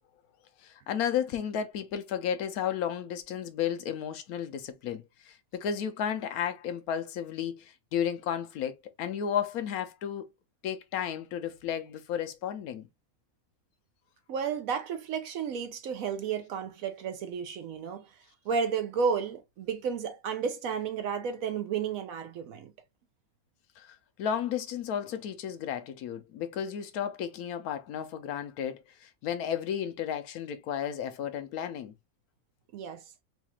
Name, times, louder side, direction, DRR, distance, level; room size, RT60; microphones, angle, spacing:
voice 1, 0.6-10.3 10.6-12.9 23.8-31.9, left 8 dB, 90° left, 1.2 m, -33 dB
voice 2, 14.3-18.1 18.4-22.7 32.7-33.1, right 6 dB, 75° right, 1.0 m, -32 dB
4.1 x 2.3 x 2.9 m
omnidirectional pair, 1.5 m